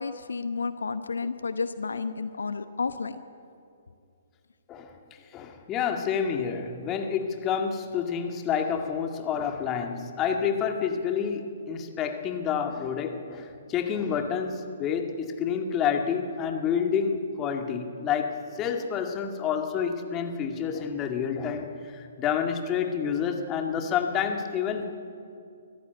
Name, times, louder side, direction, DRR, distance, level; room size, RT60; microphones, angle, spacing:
voice 1, 0.0-3.2, left 4 dB, 75° left, 11 dB, 0.9 m, -31 dB
voice 2, 5.3-24.8, left 7 dB, 20° left, 4 dB, 2.1 m, -29 dB
24.0 x 15.0 x 9.1 m, 2.5 s
figure-of-eight pair, 130°, 0 cm